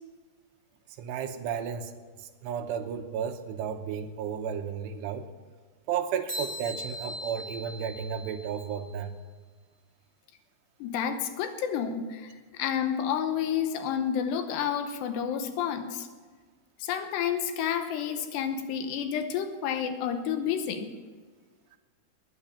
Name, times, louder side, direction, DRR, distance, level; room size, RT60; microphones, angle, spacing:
voice 1, 1.0-1.9 2.4-5.3 5.9-9.2, right 8 dB, 80° right, 7 dB, 3.0 m, -33 dB
sound 1, 6.3-8.9, equal, 5° right, 4.0 m, -39 dB
voice 2, 10.8-16.1 16.8-20.9, left 8 dB, 75° left, 7 dB, 3.1 m, -30 dB
20.5 x 9.1 x 7.1 m, 1.4 s
omnidirectional pair, 5.1 m